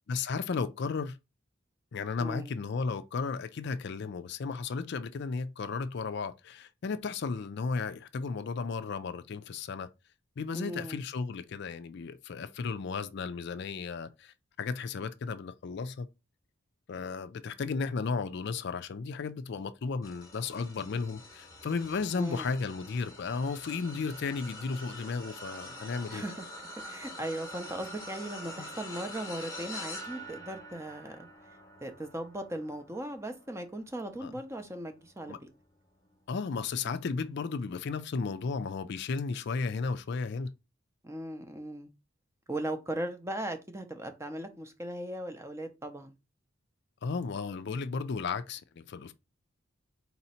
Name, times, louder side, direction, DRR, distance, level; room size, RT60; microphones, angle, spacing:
voice 1, 0.1-1.2 1.9-9.9 10.4-16.1 16.9-26.2 28.6-28.7 34.2-34.4 35.3-35.4 36.3-40.5 47.0-49.1, left 4 dB, 55° left, 0.4 m, -34 dB
voice 2, 2.2-2.5 10.5-11.0 22.2-22.5 26.1-26.4 26.8-31.3 31.8-35.5 41.0-41.9 42.5-46.1, right 1 dB, 15° right, 0.5 m, -38 dB
sound 1, 20.0-35.5 36.0-36.3 37.6-37.7, left 1 dB, 15° left, 0.9 m, -46 dB
4.1 x 2.8 x 4.2 m
head